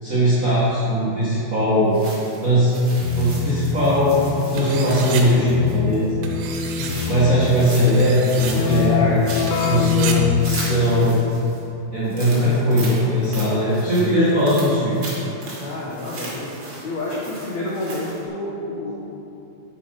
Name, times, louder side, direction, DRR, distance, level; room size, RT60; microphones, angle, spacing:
voice 1, 0.0-2.0 2.4-2.7 3.1-4.1 4.5-6.2 7.0-9.2 9.6-11.1 11.9-15.0, equal, 55° right, -11 dB, 0.9 m, -19 dB
sound 1, 1.9-6.1 6.6-8.0 8.2-11.6 12.0-18.2, right 2 dB, 40° right, 2.1 m, -37 dB
Keyboard (musical), 3.0-11.4, left 7 dB, 85° left, 3.0 m, -26 dB
sound 2, 4.6-5.2 6.2-6.9 7.9-8.6 9.5-10.2, right 7 dB, 75° right, 2.7 m, -32 dB
voice 2, 6.8-7.2 12.4-12.5 15.6-16.5 16.8-18.9, left 1 dB, 65° left, -6 dB, 1.8 m, -30 dB
9.2 x 8.8 x 5.5 m, 2.9 s
omnidirectional pair, 5.2 m